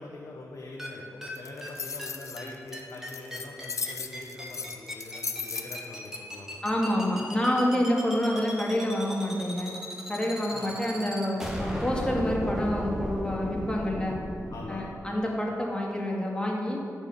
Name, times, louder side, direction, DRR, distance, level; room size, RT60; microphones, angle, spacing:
voice 1, 0.0-7.0 10.5-10.7 14.5-14.9, left 2 dB, 75° left, -3 dB, 1.3 m, -43 dB
sound 1, 0.8-0.9 1.2-1.3 1.6-1.7 2.0-2.1 2.4-2.5 2.7-14.8, equal, 10° right, 1.9 m, -35 dB
sound 2, 1.4-6.2, left 5 dB, 60° left, 0.6 m, -36 dB
voice 2, 6.6-9.7 10.1-14.1 14.7-16.8, left 1 dB, 15° left, -2 dB, 2.3 m, -28 dB
13.5 x 5.0 x 6.9 m, 2.5 s
wide cardioid pair, 80°, 6 cm